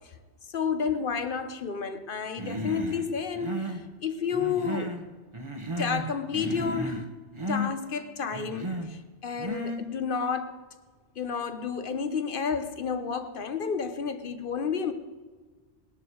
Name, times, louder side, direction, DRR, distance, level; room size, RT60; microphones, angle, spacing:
voice 1, 0.5-5.0 5.8-7.1 7.5-10.5 11.2-14.9, left 6 dB, 50° left, 1.2 m, -31 dB
Human voice, 2.4-3.1 3.3-3.8 4.3-5.0 5.3-6.1 6.3-7.1 7.3-7.7 8.3-8.9 9.4-9.8, equal, 25° right, 1.2 m, -33 dB
20.5 x 12.0 x 4.7 m
omnidirectional pair, 1.2 m